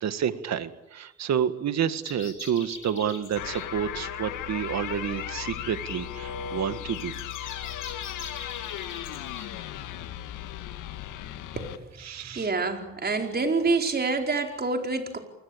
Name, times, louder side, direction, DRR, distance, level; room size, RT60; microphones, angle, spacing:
voice 1, 0.0-7.1 12.0-12.5, right 8 dB, 60° right, 12 dB, 1.9 m, -29 dB
sound 1, 2.0-3.7 7.0-9.5, left 5 dB, 40° left, 7.9 m, -43 dB
sound 2, 3.4-11.8, left 11 dB, 90° left, 2.0 m, -36 dB
voice 2, 11.5-11.9 12.3-15.2, right 3 dB, 30° right, 4 dB, 4.7 m, -27 dB
28.0 x 20.5 x 8.7 m, 0.93 s
cardioid pair, 90°, 30 cm